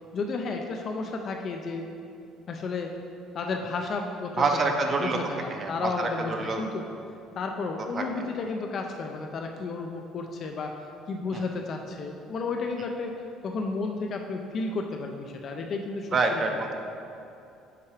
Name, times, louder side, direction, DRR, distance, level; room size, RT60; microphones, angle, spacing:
voice 1, 0.1-1.9 2.5-2.9 3.3-6.8 7.4-10.7 11.1-16.4, left 3 dB, 40° left, 3 dB, 0.4 m, -32 dB
voice 2, 4.4-5.2 5.5-6.7 7.9-8.0 11.3-11.4 16.1-16.8, right 3 dB, 35° right, 3 dB, 0.6 m, -27 dB
5.7 x 4.7 x 4.8 m, 2.7 s
cardioid pair, 135°, 0 cm